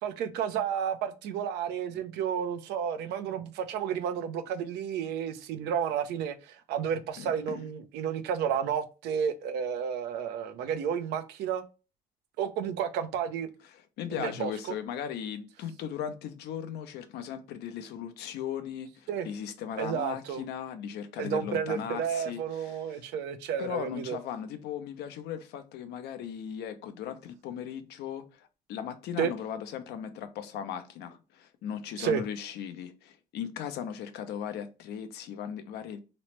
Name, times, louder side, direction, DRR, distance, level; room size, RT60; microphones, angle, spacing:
voice 1, 0.0-11.6 12.4-13.5 14.1-14.5 19.1-19.3 19.8-20.4 21.2-24.2 29.2-29.3 32.0-32.2, right 8 dB, 85° right, 0.7 m, -31 dB
voice 2, 7.2-7.6 13.6-23.0 23.6-36.0, left 8 dB, 80° left, 0.7 m, -38 dB
3.1 x 3.0 x 3.1 m
cardioid pair, 110°, 17 cm